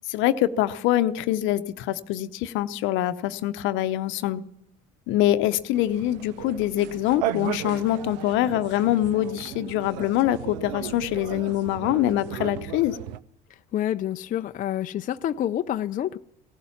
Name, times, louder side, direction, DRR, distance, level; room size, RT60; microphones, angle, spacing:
voice 1, 0.1-4.4 5.1-13.0, left 13 dB, 65° left, 0.8 m, -24 dB
sound 1, 5.7-13.2, right 13 dB, 80° right, 0.6 m, -35 dB
voice 2, 13.7-16.2, left 11 dB, 40° left, 0.5 m, -28 dB
17.0 x 12.0 x 7.2 m
hypercardioid pair, 75°, 21 cm